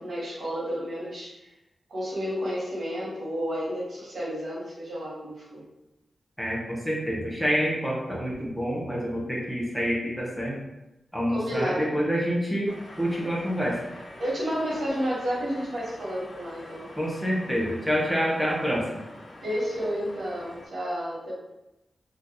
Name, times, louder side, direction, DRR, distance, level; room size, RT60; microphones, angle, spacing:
voice 1, 0.0-1.5 1.9-5.6 11.3-11.9 14.2-16.9 19.4-21.3, equal, 70° right, -6 dB, 1.3 m, -31 dB
voice 2, 6.4-10.6 11.1-12.7 13.0-13.8 17.0-19.0, equal, 5° left, -4 dB, 0.6 m, -27 dB
sound 1, 12.7-20.7, left 1 dB, 55° left, 0.6 m, -46 dB
2.7 x 2.4 x 3.6 m, 0.94 s
wide cardioid pair, 130°, 0 cm